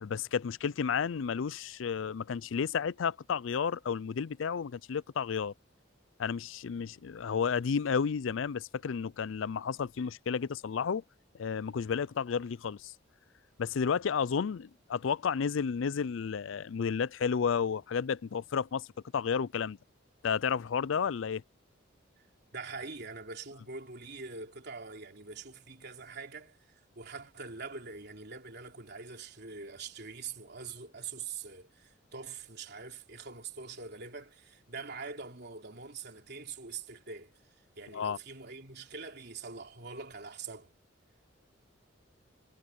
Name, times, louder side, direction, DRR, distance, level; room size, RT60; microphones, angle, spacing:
voice 1, 0.0-5.5 6.2-11.0 11.3-12.9 13.6-18.9 19.1-19.8 20.2-21.4 37.9-38.2, left 6 dB, 75° left, 0.4 m, -32 dB
voice 2, 22.5-26.6 27.0-37.3 37.8-40.7, right 4 dB, 55° right, 3.5 m, -44 dB
head